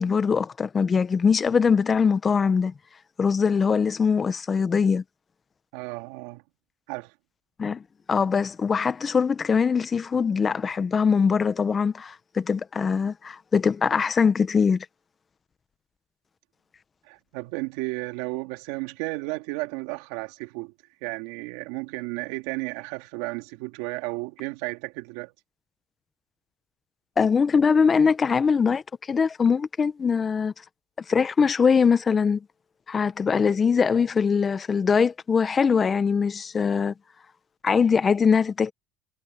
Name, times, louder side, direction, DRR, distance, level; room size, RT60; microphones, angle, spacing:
voice 1, 0.0-2.7 3.2-5.0 7.6-7.8 8.1-14.8 27.2-28.8 29.1-30.5 31.1-32.4 32.9-36.9 37.6-38.7, left 6 dB, 30° left, 1.0 m, -22 dB
voice 2, 5.7-6.4 6.9-7.1 17.1-20.7 21.0-25.3, right 24 dB, 80° right, 4.0 m, -33 dB
supercardioid pair, 100°, 0 cm